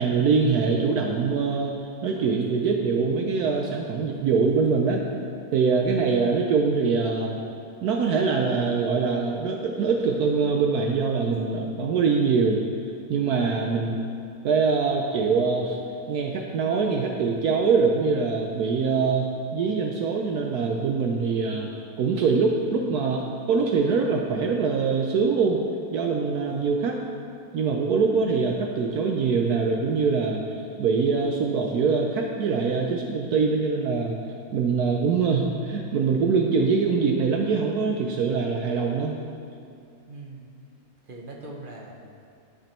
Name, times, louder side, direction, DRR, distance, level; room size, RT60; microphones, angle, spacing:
voice 1, 0.0-5.0 5.5-7.4 7.8-12.6 13.1-14.0 14.4-15.8 16.1-21.7 22.0-25.6 25.9-27.0 27.5-34.2 34.5-39.1, right 5 dB, 70° right, 1 dB, 1.0 m, -23 dB
voice 2, 5.8-6.2 40.1-40.5 41.0-41.9, right 2 dB, 50° right, -1 dB, 0.6 m, -41 dB
11.5 x 5.1 x 4.4 m, 2.5 s
omnidirectional pair, 1.9 m